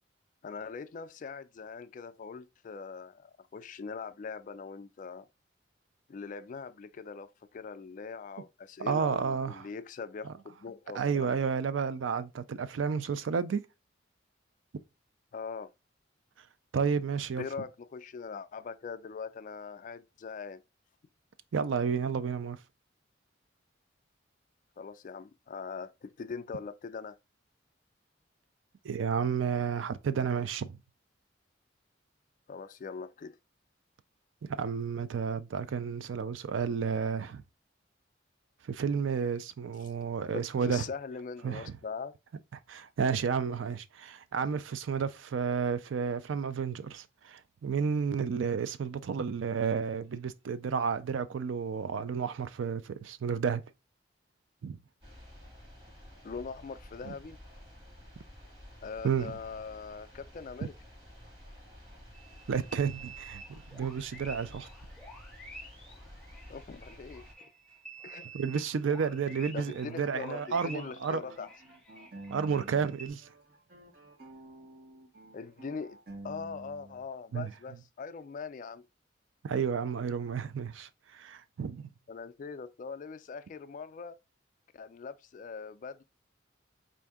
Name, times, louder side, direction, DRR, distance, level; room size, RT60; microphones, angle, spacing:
voice 1, 0.4-5.3 6.1-11.4 15.3-15.7 17.4-20.6 24.8-27.2 32.5-33.4 40.3-42.2 56.2-57.4 58.8-60.7 66.5-67.3 68.0-68.3 69.5-71.5 75.3-76.0 76.2-78.8 82.1-84.2 84.7-86.0, left 5 dB, 45° left, 0.3 m, -42 dB
voice 2, 8.8-9.6 10.9-13.6 16.7-17.5 21.5-22.6 28.8-30.8 34.4-37.4 38.7-40.8 41.4-41.7 42.7-53.6 54.6-54.8 57.1-57.2 59.0-59.3 62.5-64.7 68.3-71.2 72.3-73.3 77.3-77.5 79.4-81.9, right 6 dB, 85° right, 0.4 m, -31 dB
sound 1, 55.0-67.3, equal, 25° right, 1.4 m, -52 dB
sound 2, 62.1-73.1, right 2 dB, 5° left, 0.6 m, -50 dB
sound 3, 69.1-73.0 73.2-77.0, right 1 dB, 50° right, 0.9 m, -50 dB
4.5 x 2.6 x 3.4 m
head